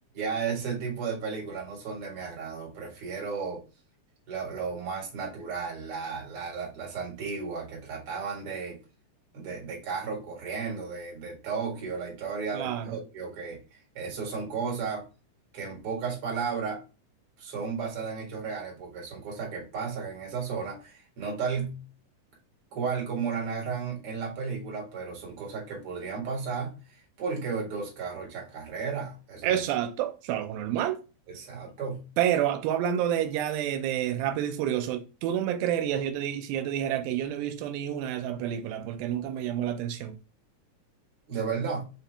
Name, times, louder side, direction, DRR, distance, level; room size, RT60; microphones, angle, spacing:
voice 1, 0.1-3.6 4.3-8.8 9.3-15.1 15.5-16.8 17.4-21.8 22.7-29.6 31.3-32.1 41.3-41.9, right 5 dB, 45° right, 2.2 m, -34 dB
voice 2, 12.5-13.0 29.4-31.0 32.2-40.2, right 10 dB, 90° right, 2.5 m, -29 dB
5.7 x 2.8 x 3.3 m
omnidirectional pair, 4.2 m